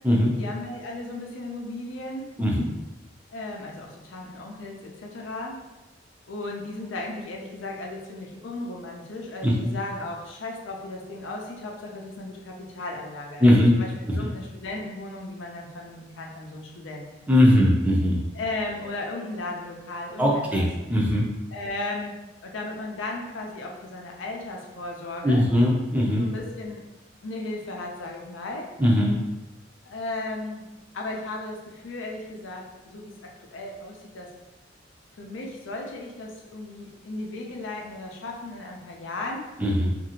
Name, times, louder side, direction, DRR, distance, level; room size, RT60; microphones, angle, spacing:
voice 1, 0.4-2.3 3.3-5.6 6.3-13.9 14.1-17.3 18.3-20.7 21.5-25.4 26.2-26.8 27.2-28.7 29.8-30.7 30.9-34.3 35.2-39.5, left 2 dB, 85° left, 0 dB, 0.5 m, -35 dB
voice 2, 13.4-13.8 17.3-18.2 20.2-21.3 25.2-26.3 28.8-29.2 39.6-39.9, left 1 dB, 10° right, -3 dB, 0.5 m, -20 dB
2.8 x 2.5 x 2.9 m, 1.1 s
head